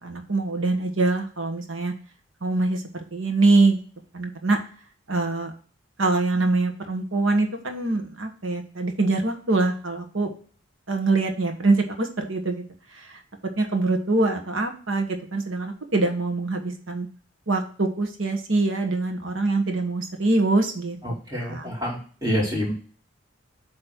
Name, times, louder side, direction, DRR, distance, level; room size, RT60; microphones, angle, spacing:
voice 1, 0.0-1.9 2.4-3.8 4.1-4.6 5.1-5.5 6.0-10.3 10.9-12.6 13.0-13.2 13.6-17.1 17.5-21.0 21.4-21.7, right 3 dB, 80° right, 5 dB, 1.3 m, -24 dB
voice 2, 21.0-22.7, equal, 20° right, -4 dB, 3.0 m, -27 dB
8.1 x 3.2 x 6.1 m, 0.42 s
head